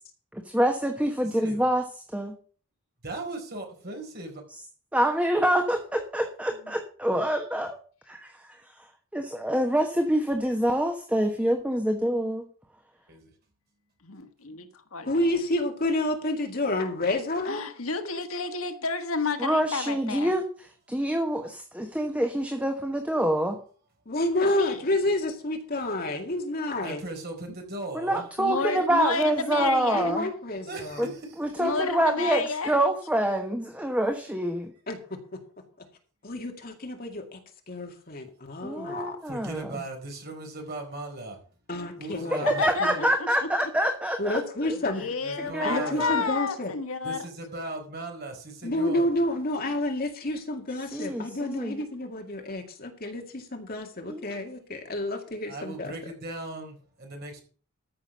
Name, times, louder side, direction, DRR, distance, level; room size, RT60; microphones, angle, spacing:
voice 1, 0.5-1.8 2.1-2.3 4.9-7.7 9.1-12.5 19.4-20.5 20.9-23.6 27.9-30.3 31.0-31.1 31.4-34.7 38.6-39.7 42.5-44.8 45.4-46.2 50.9-51.8 54.1-54.3, right 1 dB, 5° right, 1.2 m, -26 dB
voice 2, 3.0-4.4 13.1-13.3 26.8-28.3 30.7-31.6 39.2-41.4 42.0-42.7 45.2-46.1 47.0-49.2 55.5-57.4, right 2 dB, 45° right, 4.2 m, -38 dB
voice 3, 14.0-15.3 17.5-20.3 24.6-24.8 28.4-30.1 31.6-32.7 42.4-43.1 44.8-47.3, left 4 dB, 70° left, 1.5 m, -31 dB
voice 4, 15.1-17.6 24.1-27.0 29.5-31.0 31.6-32.2 34.9-35.4 36.2-37.4 37.7-39.2 41.7-43.0 44.2-45.0 45.6-46.7 48.6-55.9, left 1 dB, 40° left, 2.2 m, -29 dB
13.5 x 6.3 x 6.2 m
head